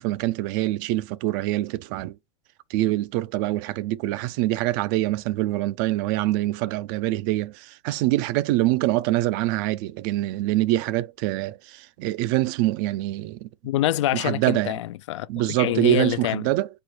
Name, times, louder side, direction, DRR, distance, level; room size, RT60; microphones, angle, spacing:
voice 1, 0.0-2.2 2.7-13.5 14.1-14.8 15.3-16.7, right 16 dB, 45° right, 0.4 m, -25 dB
voice 2, 13.6-15.3 15.6-16.4, left 14 dB, 85° left, 0.4 m, -25 dB
4.3 x 2.3 x 4.7 m
supercardioid pair, 155°, 15 cm